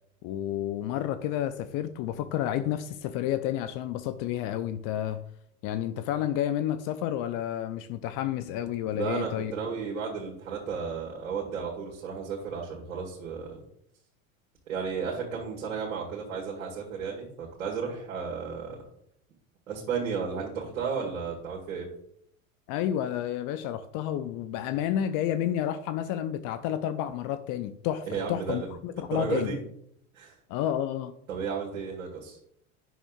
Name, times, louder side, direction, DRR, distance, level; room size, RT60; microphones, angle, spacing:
voice 1, 0.2-5.2 5.6-9.5 22.7-29.5 30.5-31.1, left 11 dB, 50° left, 11 dB, 0.6 m, -30 dB
voice 2, 9.0-13.6 14.7-18.8 19.7-21.9 28.1-28.8 29.1-29.6 30.1-30.4 31.3-32.4, right 6 dB, 80° right, -4 dB, 2.0 m, -33 dB
9.1 x 6.1 x 2.4 m, 0.71 s
hypercardioid pair, 85°, 41 cm